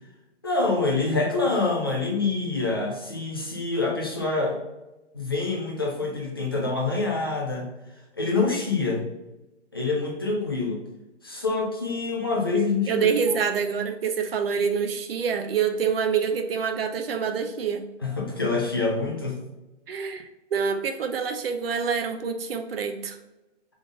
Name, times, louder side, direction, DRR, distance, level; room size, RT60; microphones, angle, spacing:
voice 1, 0.4-4.6 5.1-7.7 8.2-9.1 9.7-10.8 11.2-13.4 18.0-19.4, left 3 dB, 20° left, -2 dB, 0.4 m, -26 dB
voice 2, 12.5-17.8 19.9-23.2, right 6 dB, 55° right, 6 dB, 0.6 m, -26 dB
3.6 x 3.6 x 3.6 m, 1.0 s
hypercardioid pair, 160°, 36 cm